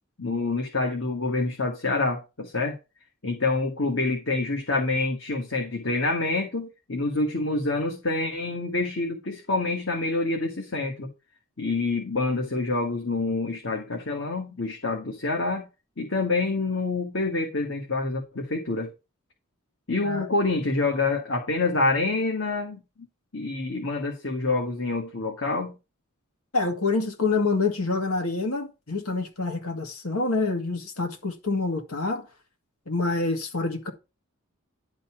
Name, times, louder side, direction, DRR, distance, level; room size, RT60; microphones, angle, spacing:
voice 1, 0.2-2.8 3.2-11.1 11.6-15.7 16.0-18.9 19.9-22.8 23.3-25.7, left 3 dB, 60° left, 1.5 m, -27 dB
voice 2, 26.5-32.3 32.9-33.9, left 3 dB, 90° left, 2.0 m, -27 dB
11.0 x 4.0 x 5.8 m
head